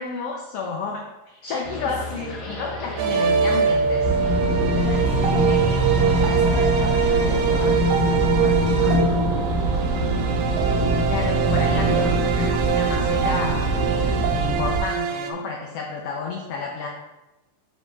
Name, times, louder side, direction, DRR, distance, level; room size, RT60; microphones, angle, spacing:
voice 1, 0.0-4.1 11.1-16.9, left 5 dB, 90° left, 0 dB, 1.3 m, -31 dB
sound 1, 1.6-7.8, left 2 dB, 55° left, 1.1 m, -34 dB
sound 2, 3.0-15.3, right 6 dB, 80° right, 1.5 m, -23 dB
sound 3, 4.0-14.8, equal, 70° left, 0.5 m, -24 dB
voice 2, 4.7-9.0 12.0-12.2, right 1 dB, 50° right, -9 dB, 0.8 m, -38 dB
6.7 x 5.2 x 3.3 m, 1.0 s
omnidirectional pair, 3.6 m